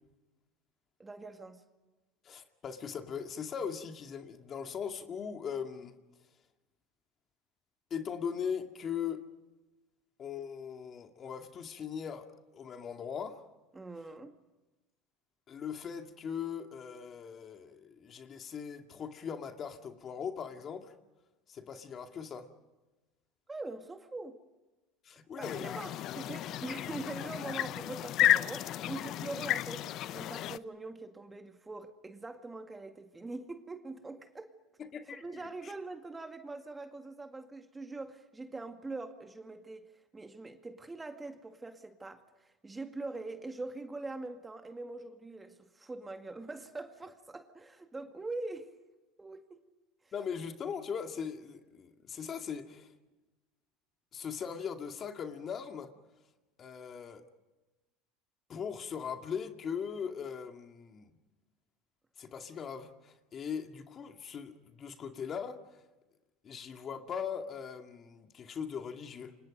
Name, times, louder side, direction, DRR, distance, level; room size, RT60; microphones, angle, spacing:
voice 1, 1.0-1.6 13.7-14.3 23.5-24.4 25.4-34.5 35.1-39.8 40.1-48.7 49.2-49.6, right 3 dB, 15° right, 2.1 m, -43 dB
voice 2, 2.2-5.9 7.9-9.2 10.2-12.3 12.5-13.4 15.5-20.9 21.5-22.5 25.0-25.8 34.9-35.7 50.1-52.9 54.1-55.9 56.6-57.2 58.5-61.1 62.2-65.6 66.4-69.4, left 7 dB, 35° left, 2.2 m, -40 dB
sound 1, 25.4-30.6, left 13 dB, 50° left, 0.7 m, -32 dB
29.5 x 26.0 x 5.3 m
supercardioid pair, 115°, 0 cm